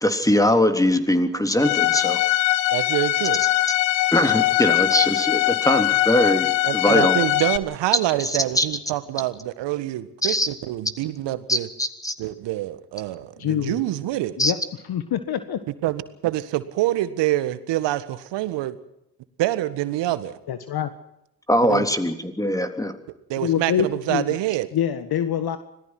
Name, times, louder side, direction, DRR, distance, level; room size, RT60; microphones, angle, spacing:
voice 1, 0.0-2.2 4.1-7.2 8.2-8.6 10.2-10.5 11.5-12.1 14.4-14.5 21.5-22.9, left 1 dB, 5° left, 8 dB, 3.4 m, -21 dB
Bowed string instrument, 1.6-7.6, left 16 dB, 70° left, 1.3 m, -21 dB
voice 2, 2.7-3.4 6.6-11.7 12.2-14.4 15.8-18.8 19.4-20.4 21.7-21.8 23.3-24.7, right 15 dB, 65° right, 14 dB, 1.7 m, -26 dB
voice 3, 13.4-13.8 14.4-14.6 14.9-15.6 20.5-20.9 23.4-24.4 24.7-25.6, left 9 dB, 55° left, 11 dB, 1.7 m, -25 dB
25.5 x 18.0 x 6.0 m, 0.81 s
hypercardioid pair, 50°, 45 cm